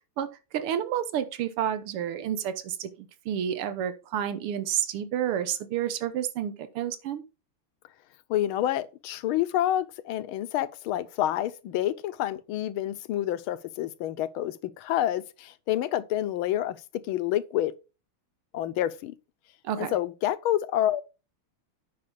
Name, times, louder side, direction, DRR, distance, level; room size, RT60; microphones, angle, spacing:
voice 1, 0.5-7.2 19.6-20.0, right 9 dB, 85° right, 1.9 m, -30 dB
voice 2, 8.3-16.8 17.1-17.7 18.5-19.1 19.8-21.0, left 12 dB, 75° left, 1.5 m, -28 dB
9.5 x 5.7 x 5.0 m
omnidirectional pair, 2.4 m